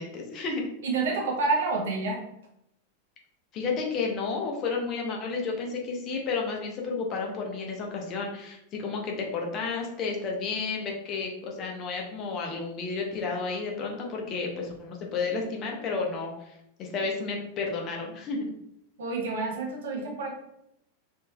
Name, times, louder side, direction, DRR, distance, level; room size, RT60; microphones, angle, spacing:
voice 1, 0.0-0.7 3.5-18.4, left 4 dB, 35° left, 0 dB, 0.7 m, -32 dB
voice 2, 0.8-2.2 19.0-20.3, right 3 dB, 60° right, 0 dB, 0.8 m, -28 dB
3.1 x 2.7 x 2.2 m, 0.78 s
figure-of-eight pair, 90°, 0 cm